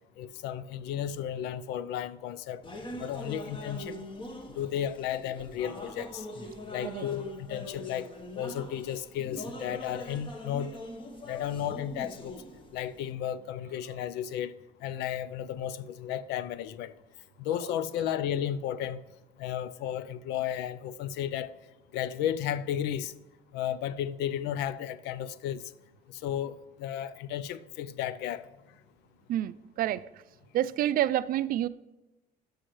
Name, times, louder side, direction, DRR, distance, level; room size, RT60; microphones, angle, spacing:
voice 1, 0.2-2.6 3.0-4.0 4.5-6.3 6.7-8.1 8.3-10.7 11.2-12.4 12.7-14.5 14.8-16.9 17.4-19.0 19.4-21.5 21.9-23.1 23.5-25.7 26.1-28.5, left 10 dB, 90° left, 0.4 m, -33 dB
sound 1, 2.6-13.1, left 1 dB, 30° left, 1.0 m, -42 dB
voice 2, 29.3-30.0 30.5-31.7, right 12 dB, 60° right, 0.4 m, -28 dB
12.5 x 6.3 x 3.1 m
cardioid pair, 110°, 17 cm